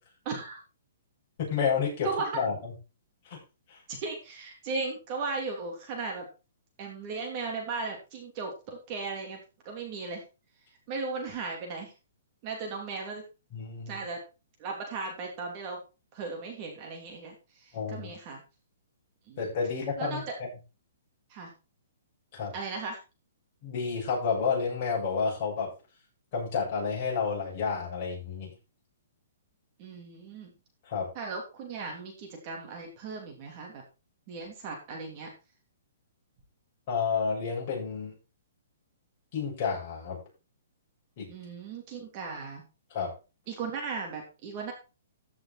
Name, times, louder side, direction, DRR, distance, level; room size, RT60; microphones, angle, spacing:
voice 1, 0.2-0.6 2.0-2.4 3.9-6.3 6.8-9.4 9.6-10.2 10.9-11.9 12.4-13.2 13.9-14.2 14.6-15.8 16.1-18.4 19.3-19.4 20.0-20.2 21.3-21.5 22.5-23.0 29.8-30.5 31.1-33.8 34.3-35.3 41.3-42.6 43.5-44.7, right 4 dB, 30° right, 1 dB, 3.3 m, -36 dB
voice 2, 1.4-2.1 2.3-2.7 3.3-3.4 3.7-3.8 13.5-14.0 17.7-18.1 19.4-20.5 22.3-22.5 23.6-25.7 26.3-28.5 30.8-31.1 36.9-38.1 39.3-40.2 41.2-41.3 42.9-43.1, left 5 dB, 35° left, -4 dB, 7.5 m, -30 dB
14.5 x 6.2 x 4.4 m, 0.30 s
hypercardioid pair, 165°, 0 cm